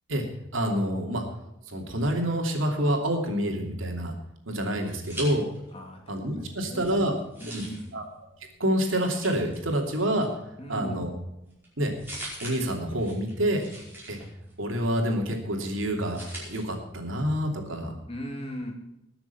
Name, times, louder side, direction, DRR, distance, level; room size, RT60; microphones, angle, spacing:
voice 1, 0.5-1.2 1.7-4.1 4.5-5.4 6.1-7.1 7.5-7.6 7.9-8.0 8.6-10.3 10.7-11.1 11.8-11.9 12.4-13.7 14.1-14.2 14.6-18.0, right 1 dB, 80° right, 2 dB, 2.8 m, -27 dB
sound 1, 4.4-5.9 6.2-16.6, right 1 dB, 10° right, 5.2 m, -45 dB
voice 2, 5.7-7.1 7.4-8.0 10.6-11.0 18.1-18.7, equal, 30° left, 2 dB, 2.4 m, -38 dB
20.5 x 7.1 x 5.8 m, 0.88 s
head